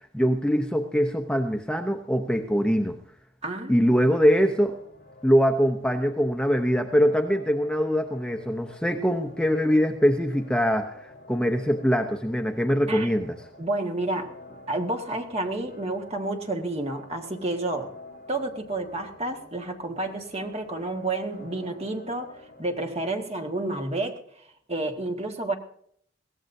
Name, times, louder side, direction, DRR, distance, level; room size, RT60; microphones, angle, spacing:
voice 1, 0.1-3.0 3.7-4.8 5.2-13.4, equal, 5° left, 4 dB, 0.7 m, -23 dB
voice 2, 3.4-4.0 12.9-13.1 13.6-17.9 18.3-24.2 24.7-25.5, right 2 dB, 35° right, 3 dB, 1.8 m, -30 dB
sound 1, 3.9-22.7, left 2 dB, 50° left, 6.7 m, -49 dB
22.5 x 17.0 x 2.7 m, 0.66 s
head